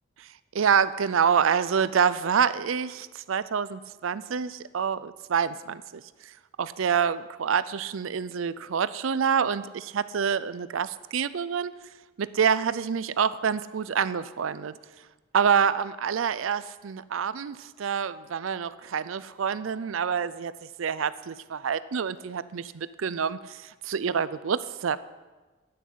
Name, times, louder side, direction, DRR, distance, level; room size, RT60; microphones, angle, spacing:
voice 1, 0.5-6.0 6.6-11.7 12.2-14.7 15.3-20.5 20.8-25.0, right 7 dB, 90° right, 16 dB, 0.5 m, -27 dB
10.0 x 8.7 x 8.5 m, 1.2 s
head